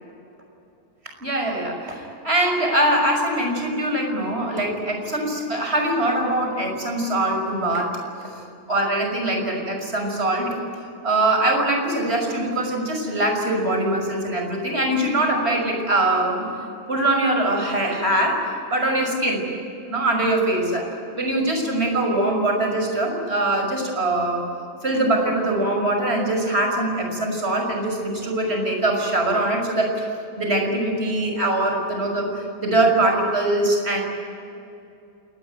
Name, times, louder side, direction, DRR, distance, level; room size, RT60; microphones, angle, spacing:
voice 1, 1.2-7.9 8.7-10.5 11.0-16.5 16.9-19.4 19.9-20.9 21.1-24.4 24.8-30.1 30.4-34.0, right 1 dB, 15° right, 2 dB, 5.9 m, -22 dB
28.0 x 20.5 x 9.4 m, 2.6 s
omnidirectional pair, 5.0 m